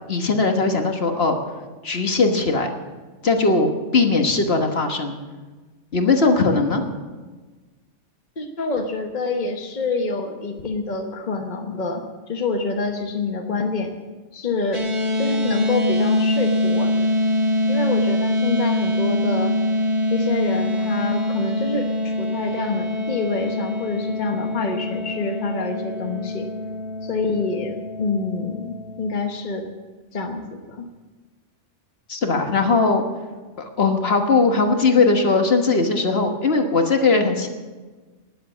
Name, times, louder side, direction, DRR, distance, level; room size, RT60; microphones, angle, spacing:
voice 1, 0.1-1.4 1.8-2.7 3.2-5.2 5.9-6.8 32.1-33.1 33.6-37.5, left 3 dB, 55° left, 4 dB, 1.6 m, -19 dB
voice 2, 8.4-12.0 12.3-13.9 14.3-14.9 15.2-17.1 17.7-19.6 20.1-26.5 27.0-29.7 30.1-30.9, left 3 dB, 40° left, 3 dB, 1.2 m, -26 dB
sound 1, 14.7-29.1, left 1 dB, 25° right, 1.2 m, -24 dB
19.5 x 7.9 x 7.2 m, 1.3 s
omnidirectional pair, 1.2 m